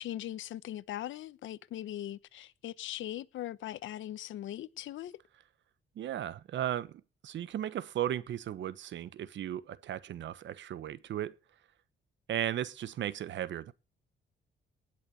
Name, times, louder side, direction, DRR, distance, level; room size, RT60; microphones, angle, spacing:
voice 1, 0.0-5.2, left 12 dB, 75° left, 0.9 m, -40 dB
voice 2, 6.0-11.4 12.3-13.7, right 11 dB, 70° right, 1.2 m, -36 dB
19.0 x 6.5 x 7.0 m
cardioid pair, 90°, 20 cm